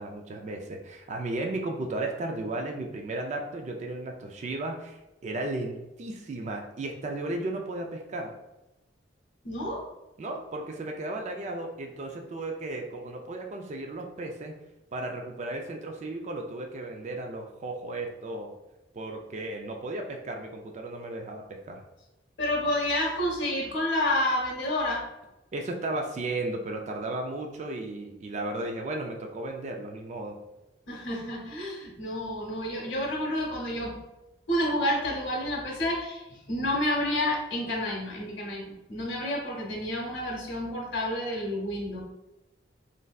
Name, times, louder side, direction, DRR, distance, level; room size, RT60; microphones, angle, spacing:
voice 1, 0.0-8.3 10.2-14.5 14.9-18.5 18.9-21.8 25.5-30.4, right 2 dB, 40° right, 2 dB, 0.3 m, -35 dB
voice 2, 9.4-9.9 22.4-25.0 30.9-34.0 34.5-42.0, left 1 dB, 70° left, -3 dB, 0.8 m, -29 dB
3.1 x 2.6 x 2.3 m, 0.97 s
head